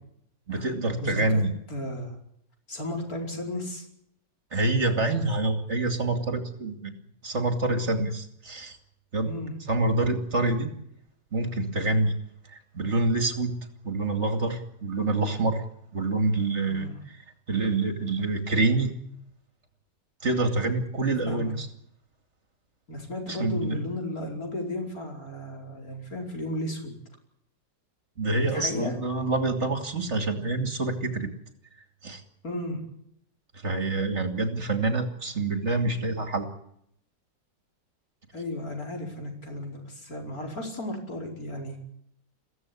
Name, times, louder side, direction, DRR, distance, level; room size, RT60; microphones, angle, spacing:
voice 1, 0.5-1.5 4.5-6.9 7.2-8.8 9.1-9.3 9.7-10.7 11.3-12.1 12.5-13.5 13.8-15.6 15.9-16.9 17.5-18.9 20.2-21.7 23.3-23.8 28.2-31.3 32.0-32.2 33.6-36.5, right 2 dB, 35° right, 6 dB, 2.8 m, -26 dB
voice 2, 1.0-1.4 1.7-2.2 2.7-3.8 9.2-9.5 16.7-17.0 21.3-21.5 22.9-27.0 28.4-28.9 32.4-32.8 38.3-41.8, left 1 dB, 50° left, 1 dB, 5.5 m, -34 dB
23.0 x 16.0 x 9.7 m, 0.73 s
omnidirectional pair, 2.0 m